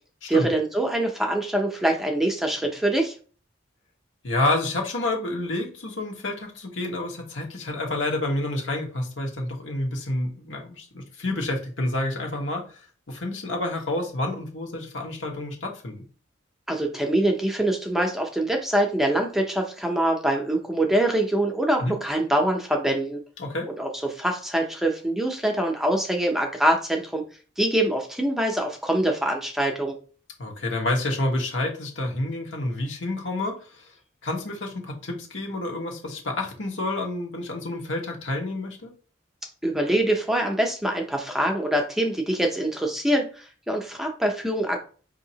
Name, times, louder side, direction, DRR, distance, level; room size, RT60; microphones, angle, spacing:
voice 1, 0.3-3.1 16.7-23.2 23.8-27.2 27.6-30.0 39.6-44.8, right 1 dB, ahead, 2 dB, 0.6 m, -24 dB
voice 2, 4.2-12.7 13.1-16.0 21.8-22.0 23.4-23.7 30.4-33.9 34.2-38.9, left 2 dB, 80° left, 1 dB, 1.2 m, -29 dB
5.2 x 2.7 x 2.8 m, 0.39 s
head